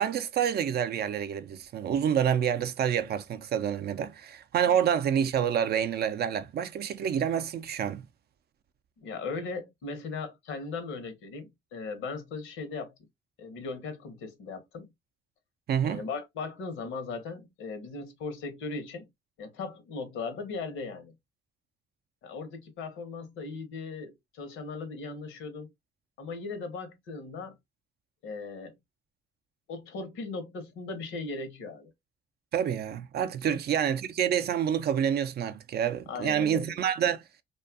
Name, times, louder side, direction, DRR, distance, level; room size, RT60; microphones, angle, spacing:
voice 1, 0.0-8.0 15.7-16.0 32.5-37.2, right 9 dB, 55° right, 0.4 m, -28 dB
voice 2, 9.0-12.9 13.4-14.9 15.8-19.1 19.4-21.1 22.2-25.7 26.2-27.5 28.2-28.7 29.7-31.9 33.4-33.6 36.1-36.7, left 4 dB, 85° left, 0.9 m, -38 dB
2.6 x 2.3 x 2.4 m
cardioid pair, 90°, 20 cm